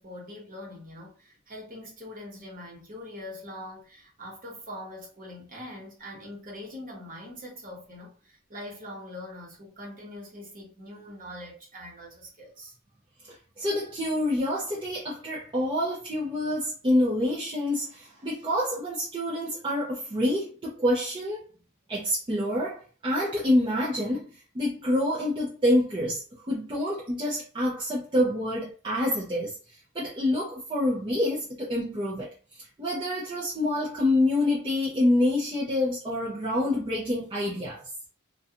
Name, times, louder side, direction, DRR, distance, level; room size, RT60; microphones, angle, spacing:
voice 1, 0.0-12.8, left 1 dB, 40° right, 0.9 m, -43 dB
voice 2, 13.6-21.4 21.9-24.3 24.5-29.5 29.9-32.3 32.8-37.8, left 1 dB, 20° right, 0.5 m, -27 dB
2.6 x 2.3 x 2.4 m
head